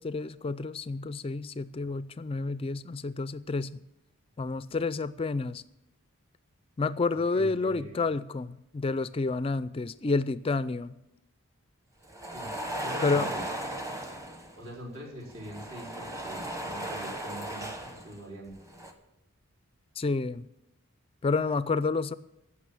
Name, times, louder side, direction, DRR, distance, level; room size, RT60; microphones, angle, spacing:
voice 1, 0.0-3.7 4.4-5.6 6.8-10.9 13.0-13.3 20.0-20.5 21.2-22.1, left 3 dB, 25° left, 0.3 m, -29 dB
voice 2, 7.1-8.0 12.3-12.5 12.8-13.4 14.5-18.5, equal, 65° right, 4.4 m, -43 dB
sound 1, 12.0-14.6 15.3-18.2 18.5-18.9, right 1 dB, 15° right, 1.1 m, -36 dB
15.5 x 6.2 x 7.6 m
head